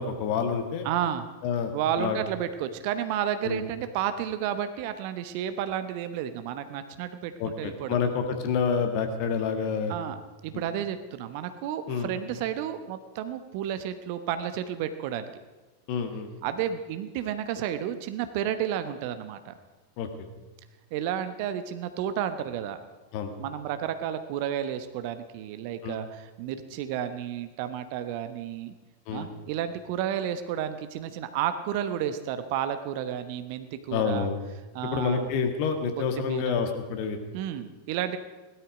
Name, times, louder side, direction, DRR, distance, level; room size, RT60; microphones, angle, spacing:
voice 1, 0.0-0.9 1.4-1.7 2.0-2.2 3.4-3.6 7.4-9.9 10.5-10.6 11.9-12.1 15.9-16.3 20.0-20.3 23.1-23.3 25.8-26.0 29.1-29.3 33.9-34.4 34.9-37.2, left 6 dB, 45° left, 6 dB, 1.9 m, -28 dB
voice 2, 0.8-1.3 1.7-8.1 9.9-10.2 10.4-15.3 16.4-19.5 20.9-22.8 23.4-28.7 29.1-34.3 34.7-35.3 36.2-36.6 37.3-38.2, right 10 dB, 45° right, 10 dB, 1.0 m, -31 dB
17.0 x 12.5 x 5.1 m, 1.2 s
figure-of-eight pair, 90°, 0 cm